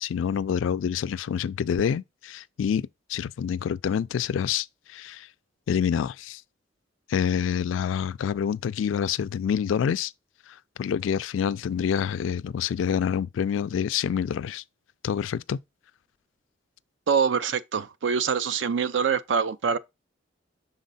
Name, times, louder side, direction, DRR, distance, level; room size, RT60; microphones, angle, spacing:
voice 1, 0.0-5.3 5.7-6.4 7.1-10.1 10.5-14.6 15.0-15.6, left 8 dB, 85° left, 0.3 m, -27 dB
voice 2, 17.1-19.8, right 6 dB, 70° right, 0.5 m, -25 dB
6.4 x 3.9 x 4.0 m
head